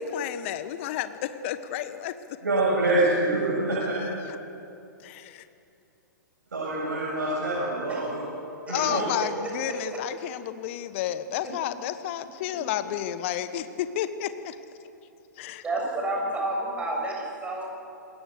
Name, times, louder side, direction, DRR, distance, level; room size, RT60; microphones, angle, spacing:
voice 1, 0.0-2.2 4.0-4.1 5.0-5.4 8.7-14.6 15.4-15.6, left 11 dB, 40° left, 12 dB, 1.3 m, -31 dB
voice 2, 2.4-4.0 6.5-8.2 8.7-9.0, right 2 dB, 70° right, -7 dB, 7.7 m, -25 dB
voice 3, 15.6-17.6, right 2 dB, 10° right, -1 dB, 6.6 m, -29 dB
27.5 x 20.5 x 6.7 m, 2.7 s
figure-of-eight pair, 115°, 10 cm